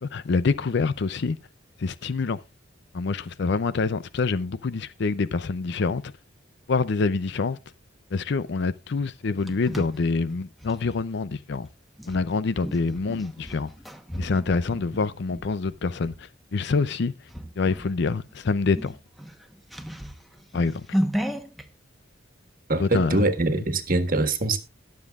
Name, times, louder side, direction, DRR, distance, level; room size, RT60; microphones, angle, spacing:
voice 1, 0.0-1.4 1.8-2.4 2.9-6.1 6.7-7.6 8.1-11.7 12.1-13.7 14.2-17.1 17.6-19.0 20.5-20.9 22.8-23.2 23.6-23.7, left 4 dB, 60° left, 0.5 m, -26 dB
sound 1, 9.3-11.0 12.0-16.2 16.7-16.9 17.3-18.0 18.3-18.4 18.7-21.7, equal, ahead, 1.0 m, -34 dB
voice 2, 22.7-24.6, right 2 dB, 50° right, 1.5 m, -23 dB
21.5 x 7.3 x 2.4 m
head